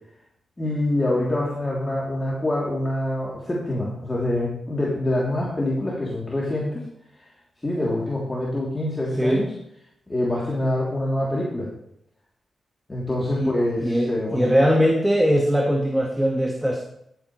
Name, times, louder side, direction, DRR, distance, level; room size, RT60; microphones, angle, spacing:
voice 1, 0.6-6.8 7.6-9.5 10.1-11.7 12.9-14.5, left 1 dB, 25° left, -5 dB, 3.1 m, -25 dB
voice 2, 13.8-16.9, equal, 5° right, 0 dB, 1.6 m, -21 dB
14.0 x 8.9 x 3.2 m, 0.75 s
cardioid pair, 60°, 0 cm